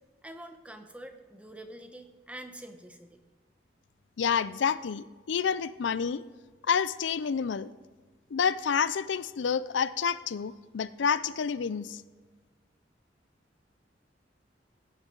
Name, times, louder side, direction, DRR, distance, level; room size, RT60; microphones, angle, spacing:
voice 1, 0.2-3.2, right 1 dB, 5° right, 6 dB, 0.9 m, -46 dB
voice 2, 4.2-6.2 6.7-7.7 8.3-12.0, left 6 dB, 80° left, 17 dB, 0.4 m, -29 dB
17.0 x 9.6 x 3.9 m, 1.4 s
head